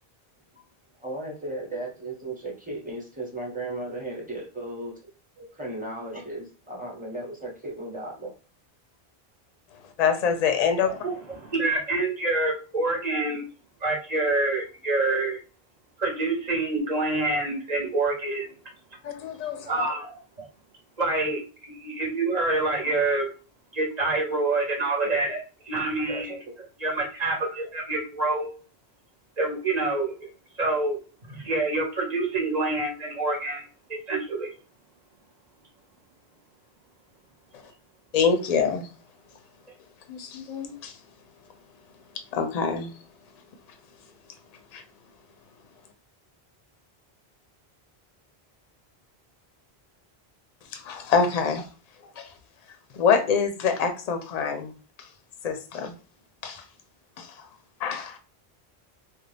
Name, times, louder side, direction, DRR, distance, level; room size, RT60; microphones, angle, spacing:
voice 1, 1.0-4.9 5.4-8.3 25.0-25.2 26.1-26.5, right 1 dB, 10° right, -4 dB, 1.0 m, -35 dB
voice 2, 10.0-10.9 19.0-19.8 38.1-38.9 40.1-40.9 42.3-42.9 44.7-44.8 50.7-51.6 52.2-52.3 52.9-54.7 55.4-55.9 56.4-56.6 57.2-57.4 57.8-58.2, left 6 dB, 50° left, 6 dB, 0.5 m, -25 dB
voice 3, 10.8-13.4 13.8-15.4 16.0-18.5 19.7-20.5 21.0-23.3 23.7-26.3 26.8-28.5 29.4-34.5, right 2 dB, 45° right, -1 dB, 1.0 m, -27 dB
2.5 x 2.3 x 3.2 m, 0.34 s
omnidirectional pair, 1.0 m